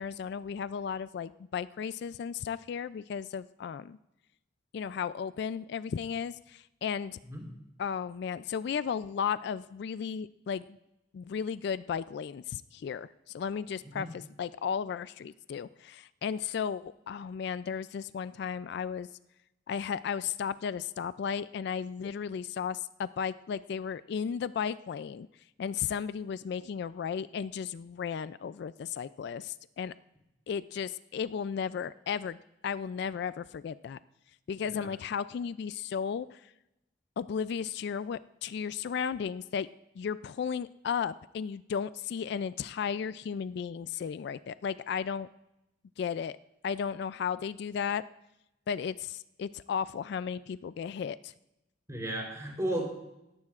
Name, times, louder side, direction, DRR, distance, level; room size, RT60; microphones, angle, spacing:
voice 1, 0.0-4.0 4.7-7.2 7.8-10.8 11.1-19.1 19.7-25.3 25.6-29.9 30.5-32.4 32.6-34.0 34.5-36.4 37.2-39.7 40.0-45.3 46.0-46.4 46.6-48.0 48.7-51.3, left 7 dB, 60° left, 16 dB, 0.3 m, -34 dB
voice 2, 51.9-52.9, right 1 dB, 20° right, 0 dB, 3.5 m, -33 dB
18.0 x 14.0 x 2.4 m, 0.90 s
head